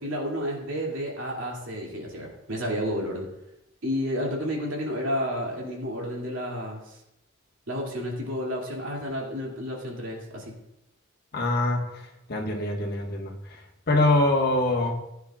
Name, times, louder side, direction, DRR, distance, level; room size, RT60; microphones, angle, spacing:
voice 1, 0.0-3.3 3.8-7.0 7.7-10.5, equal, 70° right, -2 dB, 2.7 m, -31 dB
voice 2, 11.3-15.1, left 2 dB, 50° left, 0 dB, 1.6 m, -25 dB
15.5 x 9.4 x 2.5 m, 0.87 s
head